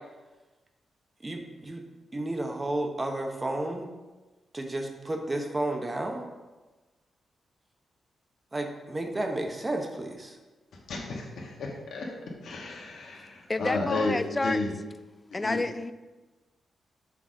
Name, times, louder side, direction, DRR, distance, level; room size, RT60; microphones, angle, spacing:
voice 1, 1.2-1.8 2.1-3.9 4.5-6.2 8.5-10.4, right 1 dB, 20° right, 3 dB, 0.8 m, -32 dB
voice 2, 10.9-12.1 12.4-14.1 14.4-14.7 15.3-15.6, left 3 dB, 70° left, -2 dB, 1.3 m, -32 dB
voice 3, 13.5-14.6 15.3-15.9, left 2 dB, 20° left, 11 dB, 0.3 m, -29 dB
5.9 x 4.0 x 6.2 m, 1.2 s
wide cardioid pair, 150°, 0 cm